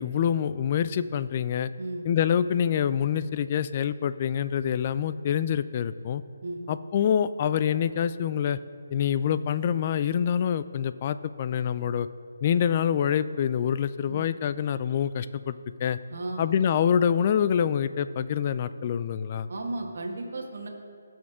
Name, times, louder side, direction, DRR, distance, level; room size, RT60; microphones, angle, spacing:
voice 1, 0.0-1.7 2.0-6.2 6.7-8.6 8.9-12.1 12.4-15.5 15.8-16.0 16.4-19.5, left 8 dB, 35° left, 14 dB, 0.3 m, -26 dB
voice 2, 16.1-16.4 19.5-20.7, right 2 dB, 65° right, 1 dB, 1.4 m, -34 dB
16.5 x 6.3 x 3.7 m, 2.4 s
hypercardioid pair, 160°, 0 cm